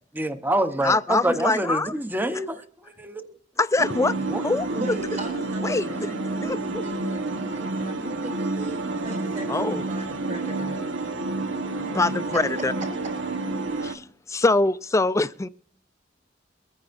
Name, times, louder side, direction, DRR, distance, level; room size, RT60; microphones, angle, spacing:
voice 1, 0.1-3.3 4.3-4.6 13.9-14.1, right 1 dB, 10° right, 0.8 m, -27 dB
voice 2, 0.8-1.9 2.3-2.4 3.6-4.2 4.4-4.7 5.6-6.1 6.4-6.8 9.5-9.9 11.8-12.7 13.8-15.5, left 3 dB, 15° left, 0.4 m, -24 dB
sound 1, 3.8-13.9, right 2 dB, 90° right, 1.1 m, -29 dB
voice 3, 4.7-11.1, right 1 dB, 45° right, 3.8 m, -38 dB
23.0 x 9.6 x 2.6 m
head